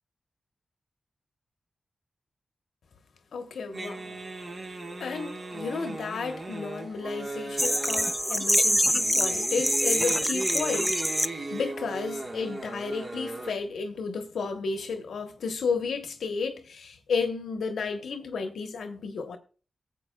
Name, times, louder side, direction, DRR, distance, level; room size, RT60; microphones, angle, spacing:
voice 1, 3.3-4.2 5.0-19.4, left 5 dB, 90° left, 1.0 m, -33 dB
sound 1, 3.7-13.5, right 2 dB, 50° right, 1.4 m, -37 dB
sound 2, 7.6-11.3, equal, ahead, 0.5 m, -25 dB
14.5 x 7.6 x 2.3 m
cardioid pair, 45°, 0 cm